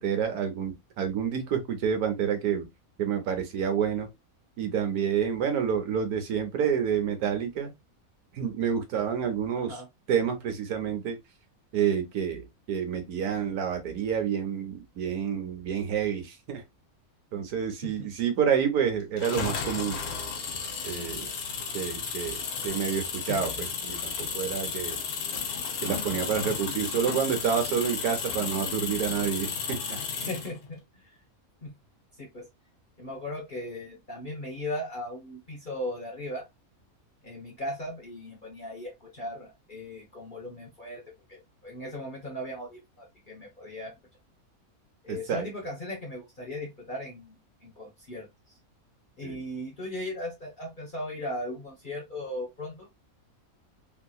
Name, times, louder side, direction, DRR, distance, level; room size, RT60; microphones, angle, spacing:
voice 1, 0.0-2.7 3.0-4.1 4.6-7.7 8.3-9.8 10.1-11.2 11.7-16.6 17.3-20.0 20.8-21.3 21.7-25.0 25.8-30.0 45.1-45.5 49.2-49.4, right 7 dB, 85° right, 1.3 m, -28 dB
voice 2, 9.6-9.9 17.8-18.1 30.1-30.8 31.0-31.1 31.6-31.7 32.2-32.4 33.0-36.4 37.2-41.0 41.3-43.9 45.0-48.3 49.2-52.9, left 1 dB, 40° left, 0.9 m, -37 dB
sound 1, 19.2-30.6, left 6 dB, 80° left, 1.3 m, -33 dB
3.2 x 2.8 x 2.3 m
omnidirectional pair, 1.5 m